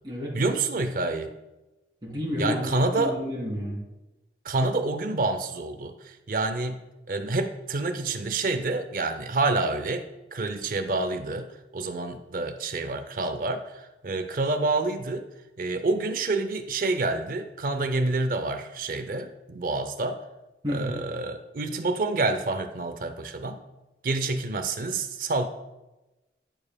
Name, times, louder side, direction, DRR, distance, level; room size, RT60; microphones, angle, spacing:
voice 1, 0.3-1.3 2.4-3.2 4.4-6.8 7.1-15.3 15.6-20.2 20.7-23.6 24.0-25.5, right 3 dB, 50° right, 8 dB, 0.5 m, -28 dB
voice 2, 2.0-3.8 20.6-21.0, left 1 dB, 25° right, -4 dB, 2.3 m, -31 dB
10.5 x 4.8 x 2.3 m, 1.0 s
head